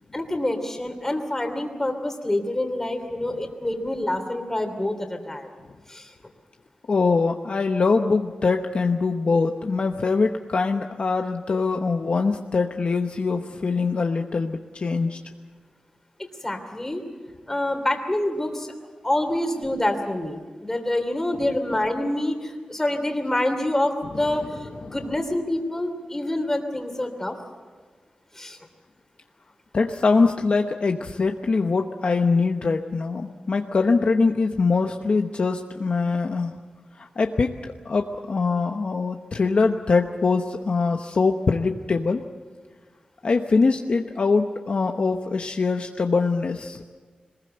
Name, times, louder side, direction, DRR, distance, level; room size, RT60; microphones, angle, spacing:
voice 1, 0.1-5.5 5.9-6.1 16.4-17.0 17.5-18.7 19.0-27.4 28.3-28.6, left 1 dB, 15° left, 5 dB, 2.9 m, -26 dB
voice 2, 6.9-15.2 24.1-24.4 24.8-24.9 29.7-36.5 37.0-42.2 43.2-46.8, left 4 dB, 50° left, 4 dB, 0.9 m, -23 dB
22.5 x 20.5 x 7.9 m, 1.5 s
wide cardioid pair, 115°, 3 cm